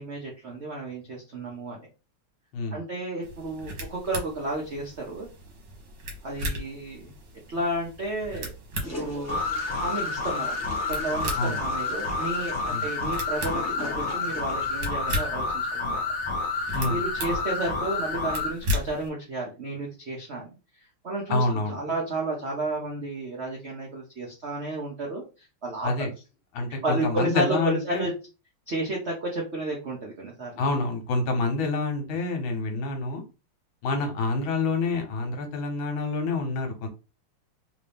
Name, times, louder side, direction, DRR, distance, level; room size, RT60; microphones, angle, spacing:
voice 1, 0.0-1.8 2.7-5.3 6.2-7.1 7.5-8.5 9.0-9.4 9.7-10.6 10.9-16.0 16.5-16.6 16.9-20.5 21.0-25.9 26.7-28.1 28.7-30.5, right 2 dB, 75° right, -2 dB, 0.6 m, -32 dB
voice 2, 2.5-2.8 11.4-11.6 12.7-12.9 16.7-17.0 21.3-21.8 25.8-26.1 26.5-28.1 30.6-33.2 33.8-36.9, left 3 dB, 70° left, 4 dB, 1.6 m, -27 dB
sound 1, 3.2-19.1, left 1 dB, 60° right, 1.6 m, -37 dB
Toilet flush, 8.8-14.9, left 1 dB, 10° left, 1.0 m, -41 dB
sound 2, 9.3-18.5, left 3 dB, 45° left, 1.0 m, -29 dB
3.5 x 2.6 x 3.4 m, 0.31 s
omnidirectional pair, 2.4 m